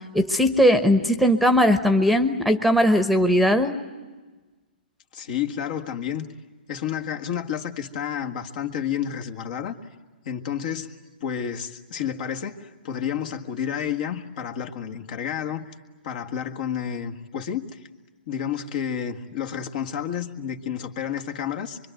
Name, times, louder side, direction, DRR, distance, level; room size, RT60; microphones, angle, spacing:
voice 1, 0.1-3.7, equal, ahead, 10 dB, 1.1 m, -19 dB
voice 2, 5.1-6.3 6.7-9.8 10.3-10.9 11.2-15.7 16.0-17.8 18.3-21.8, left 8 dB, 50° left, 4 dB, 1.8 m, -30 dB
25.0 x 24.0 x 9.2 m, 1.3 s
hypercardioid pair, 130°, 6 cm